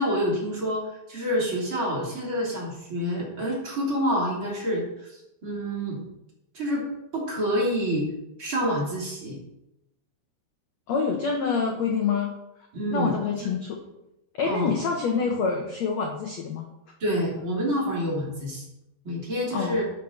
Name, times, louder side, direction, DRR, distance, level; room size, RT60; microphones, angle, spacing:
voice 1, 0.0-6.0 6.5-6.9 7.1-8.1 8.4-9.4 12.7-13.1 13.4-13.6 14.4-14.7 17.0-18.6 19.0-19.8, equal, 35° right, -4 dB, 3.5 m, -27 dB
voice 2, 10.9-12.3 12.9-13.7 14.3-16.6 19.5-19.8, left 5 dB, 65° left, 2 dB, 1.7 m, -26 dB
10.5 x 5.8 x 6.5 m, 0.88 s
omnidirectional pair, 4.5 m